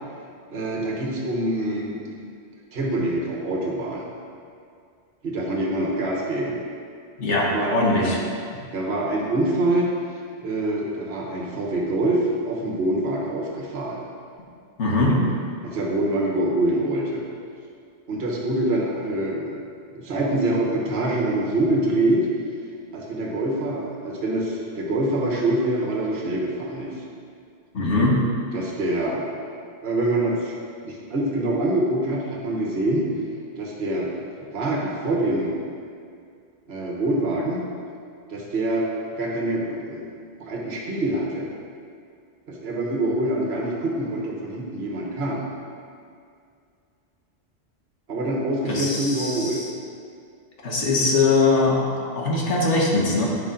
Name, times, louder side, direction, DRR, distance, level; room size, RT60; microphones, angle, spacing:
voice 1, 0.5-2.0 2.7-4.1 5.2-6.6 7.5-7.7 8.0-8.2 8.7-9.9 10.4-14.0 15.6-17.3 18.1-19.6 19.9-22.3 22.9-27.0 28.5-29.3 29.8-30.5 30.8-33.1 33.6-34.1 34.4-35.6 36.7-37.6 38.3-38.9 39.2-40.1 40.4-41.5 42.5-45.5 48.1-49.6, right 1 dB, 60° right, -2 dB, 1.4 m, -25 dB
voice 2, 7.2-8.2 14.8-15.2 27.7-28.2 48.7-49.7 50.6-53.3, left 2 dB, 85° left, -3 dB, 1.6 m, -21 dB
9.0 x 5.5 x 3.8 m, 2.3 s
omnidirectional pair, 1.2 m